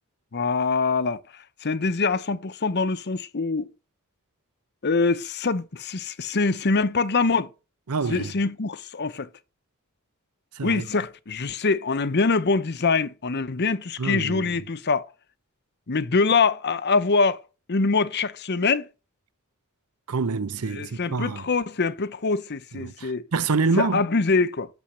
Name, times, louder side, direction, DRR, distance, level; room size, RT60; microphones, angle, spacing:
voice 1, 0.3-3.7 4.8-7.5 8.1-9.3 10.6-15.1 15.9-17.4 17.7-18.9 20.7-23.2 23.8-24.7, left 4 dB, 50° left, 0.8 m, -24 dB
voice 2, 7.9-8.3 10.6-10.8 14.0-14.5 20.1-21.4 22.7-24.0, right 4 dB, 90° right, 0.7 m, -26 dB
11.5 x 7.0 x 7.6 m
head